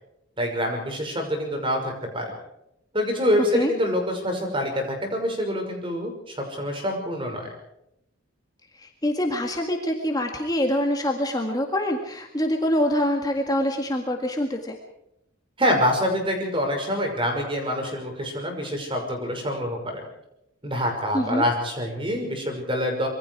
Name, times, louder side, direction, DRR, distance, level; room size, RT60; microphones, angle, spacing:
voice 1, 0.4-2.3 2.9-7.5 15.6-20.0 20.6-23.1, equal, 25° right, 3 dB, 5.9 m, -26 dB
voice 2, 8.8-14.8 21.1-21.4, equal, 20° left, 3 dB, 1.9 m, -25 dB
26.0 x 23.0 x 4.8 m, 0.82 s
head